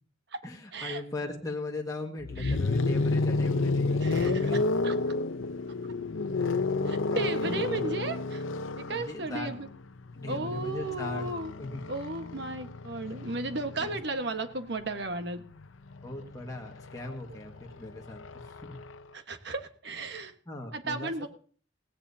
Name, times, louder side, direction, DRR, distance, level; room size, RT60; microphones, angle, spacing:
voice 1, 0.4-4.6 6.3-8.0 8.8-9.5 10.1-11.3 11.6-11.8 13.8-14.0 16.0-18.8 20.4-21.3, left 2 dB, 15° left, 0 dB, 1.7 m, -38 dB
sound 1, 2.2-14.2 15.4-19.0, left 3 dB, 85° left, 0.7 m, -31 dB
voice 2, 4.0-4.4 4.8-4.9 6.9-8.4 8.9-9.7 10.3-11.5 11.9-15.4 19.1-20.3 20.7-21.3, right 2 dB, 60° right, 7 dB, 1.4 m, -34 dB
18.0 x 17.0 x 2.8 m, 0.43 s
head